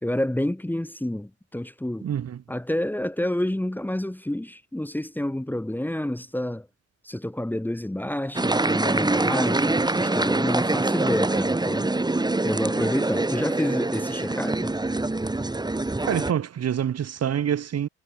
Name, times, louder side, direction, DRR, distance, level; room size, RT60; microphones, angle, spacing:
voice 1, 0.0-2.1 2.5-6.7 7.0-11.9 12.4-14.7, left 1 dB, 5° left, 1.6 m, -29 dB
voice 2, 2.0-2.4 16.1-17.9, right 9 dB, 55° right, 2.1 m, -26 dB
sound 1, 8.4-16.3, right 2 dB, 15° right, 2.4 m, -24 dB
cardioid pair, 90°, 30 cm